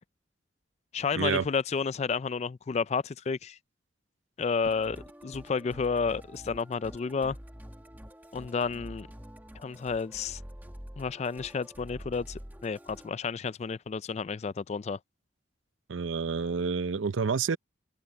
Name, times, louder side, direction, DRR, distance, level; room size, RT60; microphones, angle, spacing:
voice 1, 0.9-3.6 4.4-7.4 8.3-9.1 9.6-10.4 11.0-15.0, left 5 dB, 35° left, 0.3 m, -31 dB
Musical instrument, 4.6-13.1, equal, 10° right, 1.5 m, -47 dB
voice 2, 15.9-17.6, right 5 dB, 90° right, 0.6 m, -28 dB
open air
head